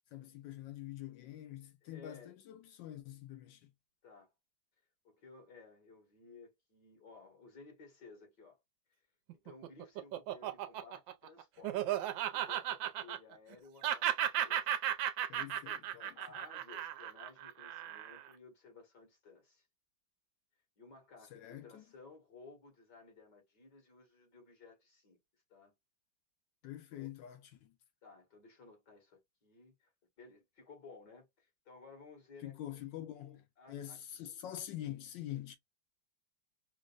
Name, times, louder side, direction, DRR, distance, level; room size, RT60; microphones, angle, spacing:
voice 1, 0.1-3.7 15.3-16.2 21.3-21.9 26.6-27.8 32.4-35.6, left 12 dB, 75° left, 1.3 m, -46 dB
voice 2, 1.8-2.4 4.0-4.3 5.0-8.6 9.3-11.8 12.3-14.7 16.1-19.7 20.8-25.2 25.5-25.7 26.9-27.1 28.0-29.9 30.2-34.0, left 4 dB, 60° left, 2.3 m, -57 dB
Laughter, 9.3-13.5 13.8-18.3, right 11 dB, 80° right, 1.3 m, -35 dB
5.1 x 2.0 x 2.4 m
omnidirectional pair, 2.1 m